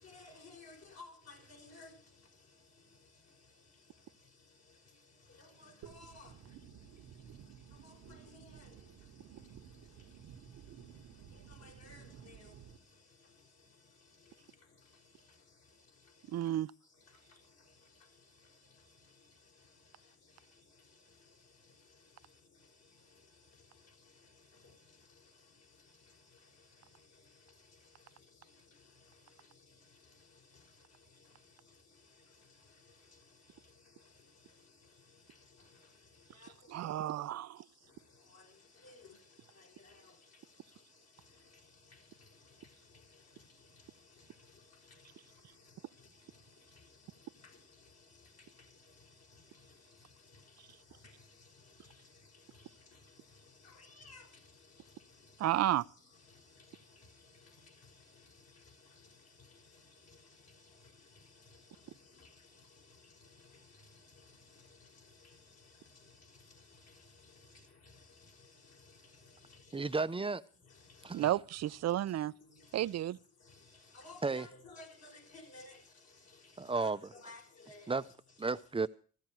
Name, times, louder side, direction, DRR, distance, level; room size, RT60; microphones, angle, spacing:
voice 1, 0.0-1.9 5.3-6.3 7.8-8.7 11.5-12.6 35.6-35.7 36.3-36.5 38.3-38.6 38.8-39.2 39.5-40.2 41.5-41.6 41.9-42.0 42.5-43.0 43.3-43.4 44.2-44.3 44.5-44.6 44.9-45.1 46.3-46.4 46.7-47.6 47.9-48.0 48.4-48.7 49.3-49.8 50.3-50.4 51.0-51.5 51.8-52.0 52.3-53.0 53.3-55.8 56.3-62.6 62.9-65.7 66.0-69.9 70.7-71.2 72.5-72.9 73.4-75.8 76.3-78.0 78.4-78.5, left 3 dB, 55° left, 5.6 m, -57 dB
sound 1, 5.8-12.8, right 8 dB, 90° right, 1.6 m, -54 dB
voice 2, 16.3-16.7 36.7-37.6 55.4-55.9 71.1-72.3 72.7-73.2, right 13 dB, 60° right, 0.6 m, -32 dB
voice 3, 69.7-70.4 71.0-71.3 74.2-74.4 76.6-77.0 77.9-78.0 78.4-78.9, right 4 dB, 20° right, 0.7 m, -33 dB
14.5 x 14.5 x 4.6 m
cardioid pair, 90°, 30 cm